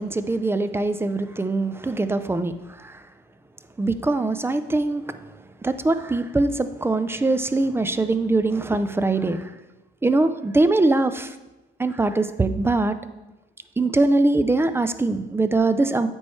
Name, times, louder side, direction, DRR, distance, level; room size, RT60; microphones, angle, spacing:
voice 1, 0.0-3.0 3.8-5.2 5.6-9.5 10.0-11.3 11.8-13.0 13.8-16.1, right 2 dB, 10° right, 11 dB, 0.3 m, -22 dB
8.7 x 3.1 x 4.4 m, 1.1 s
cardioid pair, 90°, 20 cm